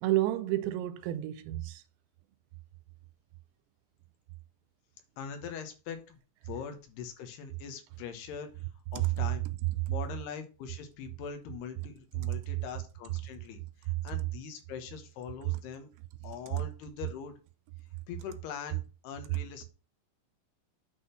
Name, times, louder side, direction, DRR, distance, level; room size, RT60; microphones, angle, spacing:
voice 1, 0.0-1.8 9.0-9.1 19.3-19.4, right 15 dB, 85° right, 2.9 m, -30 dB
voice 2, 5.2-6.2 6.4-8.5 8.9-9.5 9.9-13.6 14.0-15.9 16.2-17.3 18.1-19.7, left 7 dB, 70° left, 2.9 m, -42 dB
9.9 x 4.0 x 5.6 m
omnidirectional pair, 5.3 m